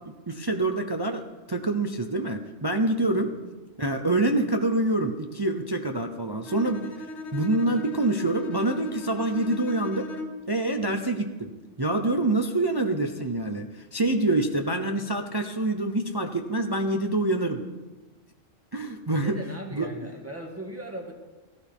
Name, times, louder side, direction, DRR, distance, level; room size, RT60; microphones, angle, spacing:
voice 1, 0.1-3.4 3.8-6.9 7.3-10.1 10.5-11.5 11.8-17.6 18.7-19.4 19.7-19.9, right 2 dB, 25° right, 5 dB, 0.5 m, -26 dB
Bowed string instrument, 6.5-10.6, left 3 dB, 65° left, 1.3 m, -38 dB
voice 2, 19.2-21.1, right 1 dB, 10° right, 1 dB, 1.9 m, -38 dB
17.0 x 15.5 x 3.6 m, 1.2 s
omnidirectional pair, 1.3 m